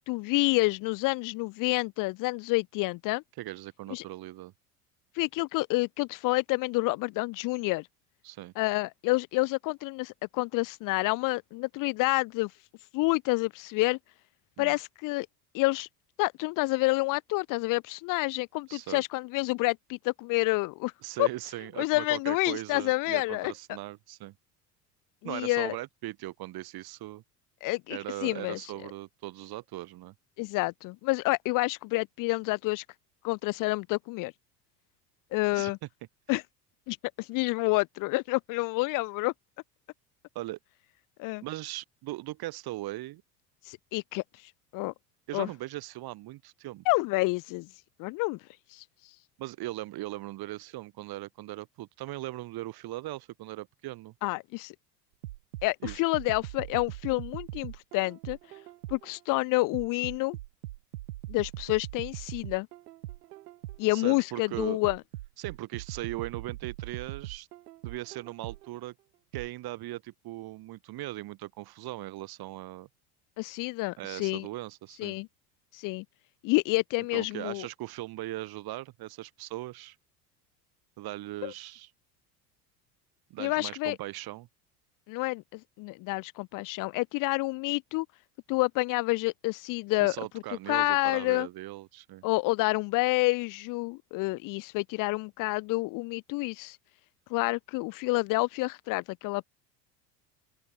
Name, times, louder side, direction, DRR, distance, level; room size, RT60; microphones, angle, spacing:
voice 1, 0.1-3.2 3.9-4.0 5.2-7.9 8.6-12.5 12.9-14.0 14.6-15.3 15.5-15.9 16.2-20.9 21.2-21.3 21.8-23.5 25.2-25.8 27.6-28.7 30.4-32.8 33.2-34.3 35.3-35.8 36.3-36.4 36.9-39.3 41.2-41.4 43.6-44.2 44.7-44.9 45.3-45.5 46.9-47.7 48.0-48.4 48.7-48.8 54.2-54.7 55.6-58.4 58.9-60.4 61.3-62.7 63.8-65.0 73.4-74.5 75.0-75.3 75.7-76.0 76.4-77.7 81.4-81.5 83.4-84.0 85.1-88.1 88.5-90.2 90.7-91.5 92.2-96.8 97.3-99.5, left 23 dB, 45° left, 0.6 m, -28 dB
voice 2, 3.4-4.5 8.2-8.5 14.6-14.8 18.7-19.0 21.0-24.4 25.2-27.2 27.9-30.1 35.5-35.7 40.4-40.6 41.4-43.2 45.3-46.8 49.4-54.1 55.8-56.0 63.9-64.8 65.4-67.5 67.8-68.9 69.3-72.9 74.0-75.2 77.1-80.0 81.0-81.9 83.3-84.5 90.0-92.2, right 17 dB, 50° right, 3.5 m, -39 dB
sound 1, 55.2-59.2 59.7-64.0 64.5-68.8 69.3-69.5, right 16 dB, 70° right, 1.4 m, -41 dB
open air
hypercardioid pair, 75°, 48 cm